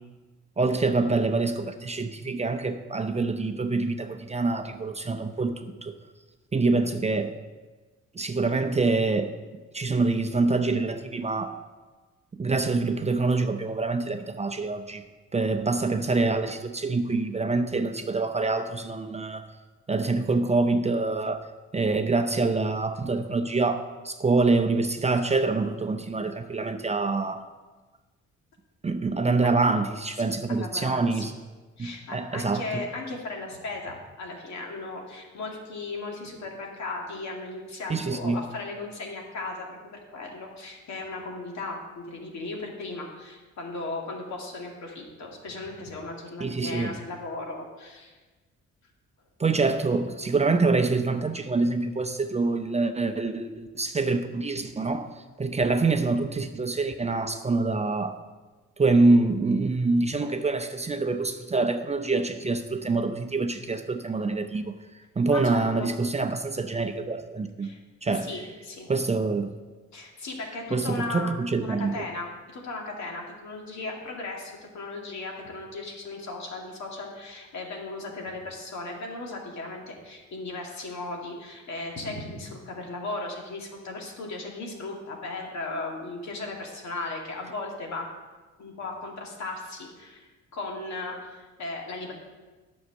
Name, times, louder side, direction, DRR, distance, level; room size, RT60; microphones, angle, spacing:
voice 1, 0.6-6.0 6.5-7.3 8.1-9.3 9.7-11.6 12.3-15.0 15.3-19.5 19.9-21.5 21.7-27.4 28.8-31.3 31.8-32.8 37.9-38.4 46.4-47.0 49.4-55.1 55.4-58.2 58.8-64.7 65.2-67.7 68.0-68.3 68.9-69.5 70.7-72.0, right 3 dB, 20° right, 7 dB, 0.6 m, -25 dB
voice 2, 30.5-31.3 31.8-48.2 65.3-65.9 67.6-67.8 68.1-68.9 69.9-71.3 71.6-88.1 88.6-92.1, left 3 dB, 65° left, 0 dB, 2.3 m, -36 dB
9.5 x 6.3 x 6.5 m, 1.3 s
cardioid pair, 90°, 30 cm